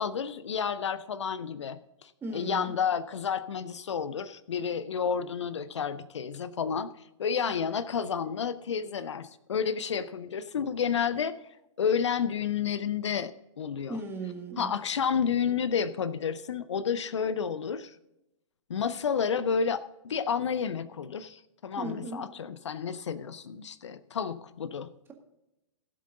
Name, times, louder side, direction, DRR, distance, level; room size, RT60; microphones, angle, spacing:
voice 1, 0.0-6.9 7.2-11.4 11.8-14.0 14.6-18.0 18.7-24.9, left 7 dB, 65° left, 14 dB, 0.6 m, -30 dB
voice 2, 2.2-2.8 7.5-7.6 13.9-14.7 21.8-22.3, right 2 dB, 15° right, 3 dB, 1.9 m, -37 dB
17.0 x 7.7 x 3.9 m, 0.91 s
figure-of-eight pair, 115°, 16 cm